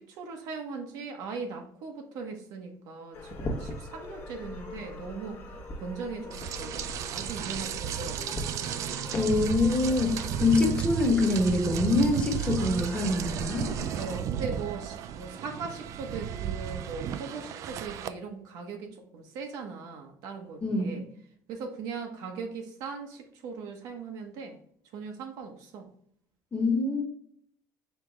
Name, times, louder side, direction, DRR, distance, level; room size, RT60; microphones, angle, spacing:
voice 1, 0.0-5.4 5.7-8.5 13.9-21.0 21.5-24.6 24.9-25.9, right 4 dB, 75° right, 3 dB, 1.0 m, -39 dB
sound 1, 3.1-14.2, left 2 dB, 35° left, 0.9 m, -41 dB
Rain, 6.3-18.1, right 9 dB, 55° right, 0.4 m, -34 dB
voice 2, 9.1-13.7 20.6-21.0 26.5-27.0, left 2 dB, 20° left, 2 dB, 1.2 m, -25 dB
4.5 x 3.5 x 3.3 m, 0.64 s
cardioid pair, 125°, 6 cm